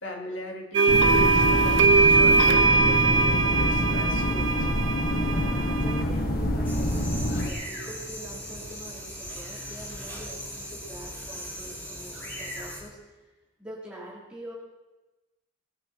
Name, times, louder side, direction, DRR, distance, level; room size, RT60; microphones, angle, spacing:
voice 1, 0.0-4.7, left 1 dB, 75° left, -1 dB, 3.1 m, -40 dB
sound 1, 0.7-6.0, right 3 dB, 75° right, 0.8 m, -21 dB
sound 2, 0.9-7.5, equal, 50° left, 1.6 m, -26 dB
voice 2, 5.0-13.1 13.6-14.5, right 1 dB, 5° right, -6 dB, 4.3 m, -44 dB
sound 3, 6.6-12.8, equal, 10° left, 6.1 m, -38 dB
22.0 x 12.0 x 4.7 m, 1.1 s
head